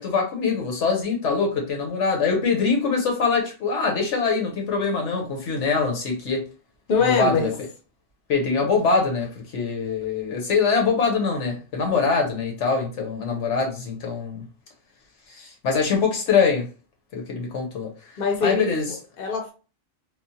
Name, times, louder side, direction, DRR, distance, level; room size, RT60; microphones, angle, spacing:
voice 1, 0.0-6.4 7.0-7.5 8.3-14.4 15.3-16.7 17.1-17.9 18.4-18.8, left 5 dB, 70° left, 1.1 m, -23 dB
voice 2, 6.9-7.6 18.2-19.5, left 5 dB, 50° left, 0.8 m, -23 dB
3.1 x 2.0 x 2.7 m
omnidirectional pair, 1.3 m